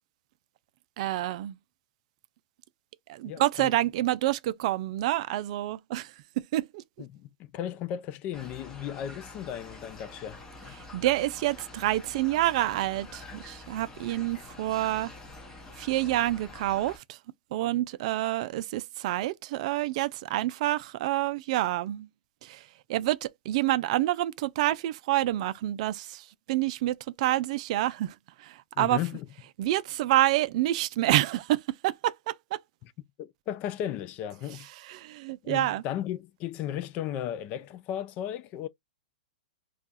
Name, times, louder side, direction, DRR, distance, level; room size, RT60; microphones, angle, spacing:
voice 1, 1.0-1.6 3.1-6.1 6.4-6.8 10.9-15.1 15.8-17.2 17.5-22.1 22.4-22.6 22.9-28.1 28.4-29.0 29.6-32.6 34.8-35.8, right 15 dB, 50° right, 0.4 m, -28 dB
voice 2, 3.2-3.7 7.0-10.4 28.8-29.3 32.8-32.9 33.2-34.7 35.4-38.7, left 11 dB, 35° left, 0.3 m, -35 dB
sound 1, 8.3-17.0, left 2 dB, 15° left, 0.9 m, -46 dB
2.4 x 2.3 x 4.0 m
hypercardioid pair, 130°, 5 cm